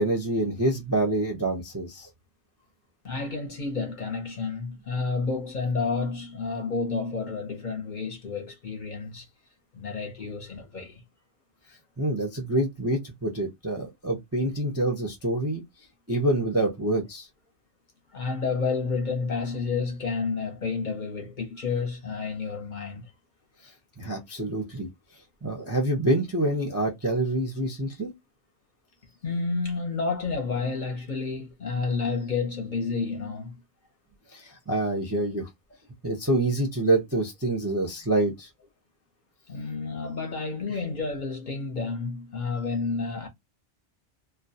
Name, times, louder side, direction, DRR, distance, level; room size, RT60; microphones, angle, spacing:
voice 1, 0.0-2.1 12.0-15.6 16.1-17.3 24.0-24.9 25.4-28.1 34.3-35.5 36.0-38.5, right 1 dB, 20° right, 0.4 m, -26 dB
voice 2, 3.0-9.3 9.7-11.0 18.1-23.0 29.2-33.5 39.5-43.3, left 4 dB, 50° left, 0.7 m, -30 dB
2.3 x 2.1 x 2.6 m
omnidirectional pair, 1.2 m